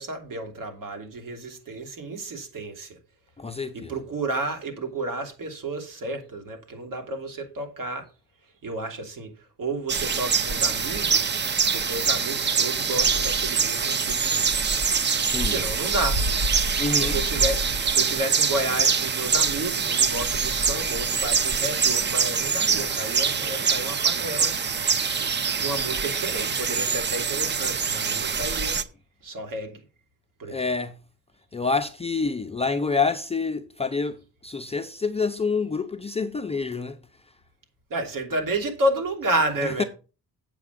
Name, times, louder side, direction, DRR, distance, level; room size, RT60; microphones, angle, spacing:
voice 1, 0.0-3.0 3.7-8.0 8.6-9.3 9.6-11.4 11.7-14.6 15.4-16.2 17.0-24.6 25.5-28.8 29.2-29.8 30.4-30.6 37.9-39.9, right 2 dB, 55° right, 2.9 m, -31 dB
voice 2, 3.4-3.9 15.3-15.5 16.8-17.2 30.5-31.0 31.5-37.0 39.6-39.8, left 4 dB, 15° left, 0.5 m, -27 dB
sound 1, 9.9-28.8, right 5 dB, 30° right, 0.6 m, -24 dB
8.2 x 7.6 x 5.1 m
cardioid pair, 175°, 39 cm